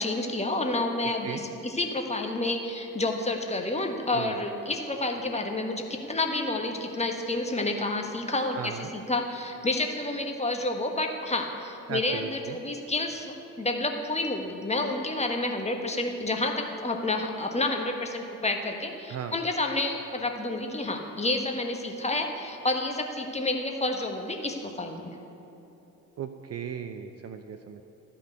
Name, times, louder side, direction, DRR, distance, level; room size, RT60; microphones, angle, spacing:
voice 1, 0.0-25.1, left 2 dB, 15° left, 3 dB, 1.3 m, -29 dB
voice 2, 1.0-1.4 4.1-4.4 8.5-8.9 11.9-12.6 19.1-19.4 26.2-27.8, right 8 dB, 35° right, 8 dB, 0.6 m, -37 dB
13.0 x 5.4 x 7.9 m, 3.0 s
figure-of-eight pair, 50°, 42 cm